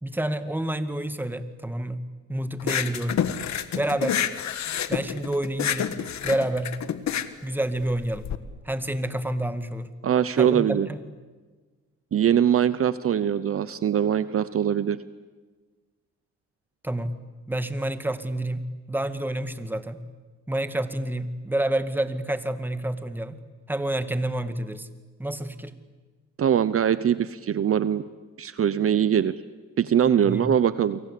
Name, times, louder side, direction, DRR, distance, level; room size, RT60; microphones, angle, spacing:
voice 1, 0.0-2.0 2.3-3.2 3.7-4.2 4.9-5.9 6.2-6.7 7.4-8.3 8.7-9.9 10.4-11.0 16.8-17.1 17.5-20.0 20.5-23.4 23.7-24.9 25.2-25.7 30.3-30.5, right 1 dB, 5° right, 10 dB, 2.0 m, -28 dB
sound 1, 2.6-8.4, left 9 dB, 65° left, 1.7 m, -28 dB
voice 2, 10.0-10.9 12.1-15.0 26.4-28.0 28.4-29.4 29.8-31.0, right 9 dB, 50° right, 15 dB, 0.9 m, -22 dB
29.5 x 24.0 x 8.5 m, 1.4 s
cardioid pair, 90°, 30 cm